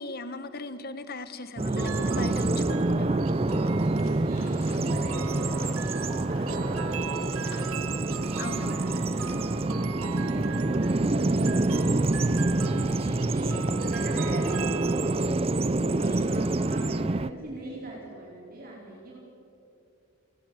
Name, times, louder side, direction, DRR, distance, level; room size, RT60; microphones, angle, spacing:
voice 1, 0.0-3.4 8.4-8.9 15.8-16.3, left 2 dB, 45° left, 12 dB, 1.4 m, -38 dB
Bird vocalization bird call bird song, 1.6-17.3, right 2 dB, 25° right, 0.5 m, -26 dB
sound 1, 1.8-15.4, right 8 dB, 75° right, 0.7 m, -41 dB
sound 2, 3.4-8.9, left 3 dB, 80° left, 3.9 m, -52 dB
voice 2, 3.6-4.0 4.2-7.8 8.3-10.4 10.9-12.1 12.9-13.6 13.8-15.0 15.9-19.2, right 2 dB, 40° right, -3 dB, 4.5 m, -42 dB
30.0 x 19.0 x 8.0 m, 2.7 s
head